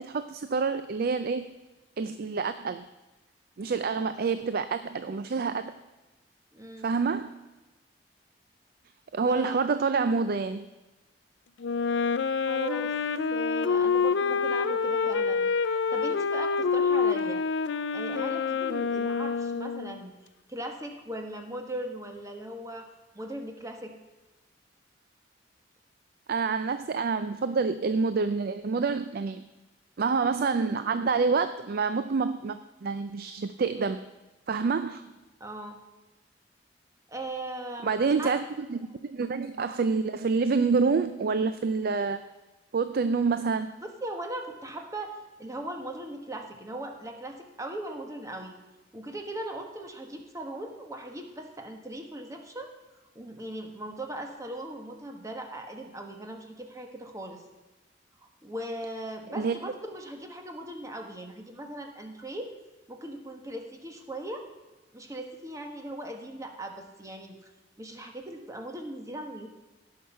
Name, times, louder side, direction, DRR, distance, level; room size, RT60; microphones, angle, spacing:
voice 1, 0.0-1.5 2.0-2.8 3.6-5.7 6.8-7.3 9.1-10.7 26.3-29.4 30.0-34.0 34.5-35.0 37.8-42.2 42.7-43.7 59.4-59.6, right 4 dB, 55° right, 11 dB, 0.4 m, -27 dB
voice 2, 4.0-4.5 6.5-6.9 9.3-9.6 12.4-13.0 13.3-17.4 17.9-20.1 20.5-22.9 23.1-23.9 35.4-35.8 37.1-38.3 43.8-48.5 48.9-52.7 53.1-57.4 58.4-62.5 62.9-64.4 64.9-67.4 67.8-69.5, right 1 dB, 20° right, 4 dB, 1.3 m, -39 dB
Wind instrument woodwind instrument, 11.6-20.0, left 5 dB, 80° left, 0.4 m, -27 dB
17.5 x 5.9 x 5.6 m, 1.1 s
head